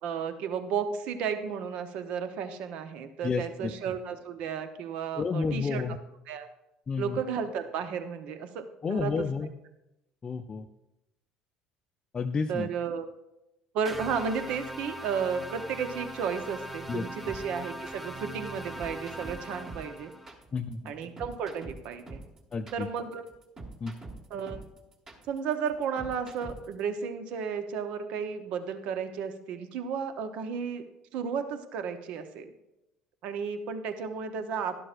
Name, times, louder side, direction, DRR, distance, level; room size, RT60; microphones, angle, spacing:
voice 1, 0.0-5.8 6.3-6.5 7.0-9.3 12.5-13.1 13.7-20.1 20.8-22.2 22.7-23.2 24.3-24.6 25.3-30.8 31.1-32.5 33.2-34.8, right 6 dB, 60° right, 9 dB, 0.9 m, -33 dB
voice 2, 3.2-3.7 5.2-6.0 6.9-7.2 8.8-9.5 10.2-10.7 12.1-12.7 16.9-17.0 20.5-20.9 22.5-22.9 23.8-23.9, left 5 dB, 30° left, 4 dB, 0.5 m, -30 dB
sound 1, 13.9-20.3, equal, 5° right, 0.9 m, -40 dB
sound 2, 17.3-26.8, right 3 dB, 30° right, 1.8 m, -45 dB
12.0 x 11.5 x 2.5 m, 0.92 s
hypercardioid pair, 65°, 2 cm